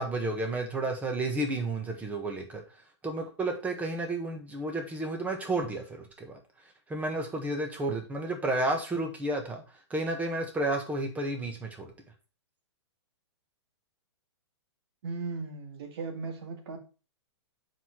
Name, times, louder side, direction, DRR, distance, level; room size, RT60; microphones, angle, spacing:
voice 1, 0.0-2.6 3.0-6.4 6.9-9.6 9.9-11.9, right 2 dB, 10° right, 4 dB, 1.5 m, -31 dB
voice 2, 15.0-16.8, right 4 dB, 60° right, 4 dB, 2.2 m, -37 dB
5.9 x 5.0 x 5.8 m, 0.33 s
hypercardioid pair, 145°, 15 cm